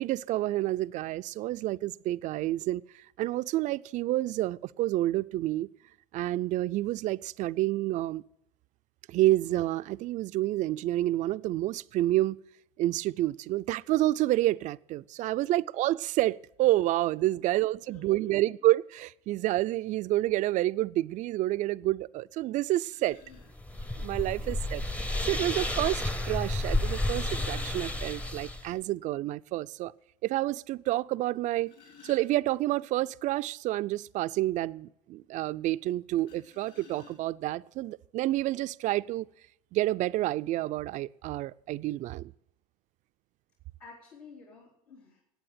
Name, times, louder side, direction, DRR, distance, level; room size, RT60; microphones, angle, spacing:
voice 1, 0.0-5.7 6.1-8.2 9.1-12.4 12.8-23.2 24.0-24.8 25.2-29.9 30.2-31.7 32.0-39.3 39.7-42.3, right 16 dB, 40° right, 0.4 m, -29 dB
voice 2, 17.9-18.6 23.2-23.4 24.4-24.9 43.8-45.2, left 5 dB, 85° left, 3.8 m, -52 dB
sound 1, 22.2-22.3 22.9-23.5 24.9-25.0 26.8-28.5 28.9-29.0 29.4-29.5 30.0-30.1 31.3-32.8 36.2-37.5 38.4-38.5 38.9-39.1, left 7 dB, 60° left, 4.7 m, -55 dB
sound 2, 23.3-28.7, left 1 dB, 5° left, 0.7 m, -31 dB
10.0 x 8.7 x 9.0 m
hypercardioid pair, 95°, 19 cm